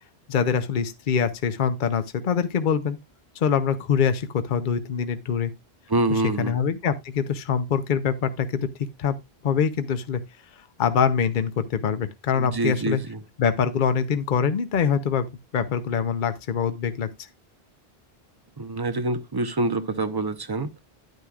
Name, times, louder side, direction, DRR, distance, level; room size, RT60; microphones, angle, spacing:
voice 1, 0.3-3.0 3.4-5.5 6.4-8.7 9.0-9.2 9.4-10.2 10.8-13.0 13.4-15.3 15.5-17.1, left 7 dB, 55° left, 0.9 m, -24 dB
voice 2, 5.9-6.6 12.4-13.2 18.6-20.7, right 2 dB, 25° right, 0.7 m, -26 dB
9.8 x 9.3 x 2.4 m
omnidirectional pair, 1.0 m